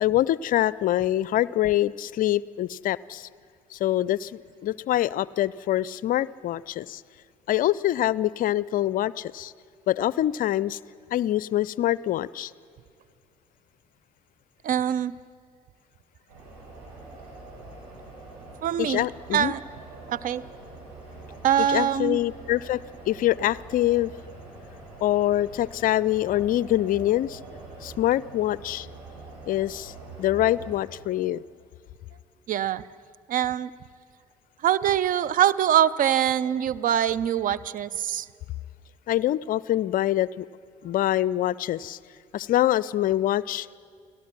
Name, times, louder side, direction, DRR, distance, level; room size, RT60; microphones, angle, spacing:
voice 1, 0.0-3.3 3.7-7.0 7.5-9.5 9.9-10.8 11.1-12.5 18.8-19.5 21.7-22.8 23.1-24.1 25.0-27.4 27.8-28.9 29.5-29.9 30.2-31.4 39.1-40.5 40.8-42.0 42.3-43.7, left 13 dB, 50° left, 21 dB, 0.5 m, -25 dB
voice 2, 14.6-15.1 18.6-19.1 19.3-19.6 20.1-20.4 21.4-22.2 32.5-32.8 33.3-33.7 34.6-38.3, right 10 dB, 45° right, 18 dB, 0.6 m, -23 dB
sound 1, 16.3-30.8, right 2 dB, 70° right, 7.0 m, -44 dB
30.0 x 18.0 x 6.0 m, 2.3 s
figure-of-eight pair, 50°, 19 cm